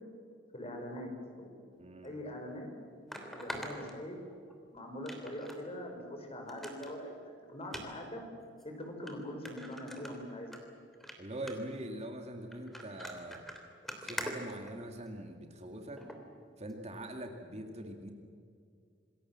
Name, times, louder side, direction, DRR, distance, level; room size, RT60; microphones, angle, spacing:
voice 1, 0.5-1.1 1.3-1.6 2.0-2.7 3.3-4.2 4.7-7.1 7.5-8.2 8.6-10.5, left 1 dB, 30° left, 3 dB, 5.3 m, -42 dB
voice 2, 1.8-2.1 11.2-13.4 14.0-16.0 16.6-18.1, right 1 dB, 35° right, 3 dB, 2.2 m, -43 dB
sound 1, 2.0-2.1 3.1-4.5 5.0-5.6 6.0-6.1 6.5-6.9 7.6-7.8 8.6-8.7 9.1-9.2 9.4-10.6 10.9-11.1 11.5-11.8 12.5-15.2 16.0-16.2 16.7-16.8, equal, ahead, 3.2 m, -43 dB
27.5 x 21.0 x 7.6 m, 2.4 s
head